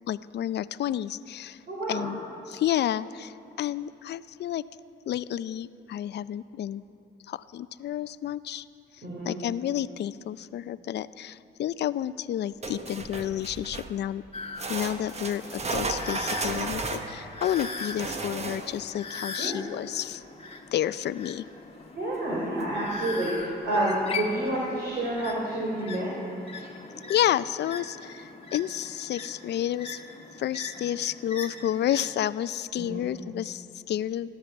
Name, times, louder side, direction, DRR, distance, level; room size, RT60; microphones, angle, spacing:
voice 1, 0.1-1.6 1.9-2.2 2.5-4.6 5.1-6.8 7.3-8.7 9.2-14.2 14.7-20.2 20.7-21.5 27.1-30.0 30.4-34.3, left 11 dB, 60° left, 16 dB, 0.5 m, -30 dB
voice 2, 1.7-2.0 9.0-9.3 19.4-19.5 21.9-26.1 32.8-33.0, right 1 dB, 60° right, -4 dB, 3.3 m, -29 dB
sound 1, 12.6-14.0 14.6-18.9 22.1-22.2 22.6-22.7 23.4-23.5, right 3 dB, 35° right, 1.1 m, -34 dB
sound 2, 14.3-32.1, left 4 dB, 30° left, 1.4 m, -41 dB
16.0 x 12.0 x 7.1 m, 3.0 s
cardioid pair, 90°, 20 cm